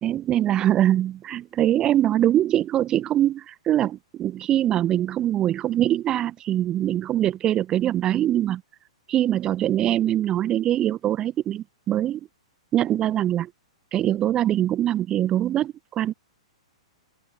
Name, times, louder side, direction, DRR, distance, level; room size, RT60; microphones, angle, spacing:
voice 1, 0.0-8.6 9.1-12.2 12.7-13.5 13.9-16.1, right 12 dB, 25° right, 1.4 m, -23 dB
figure-of-eight pair, 105°, 3 cm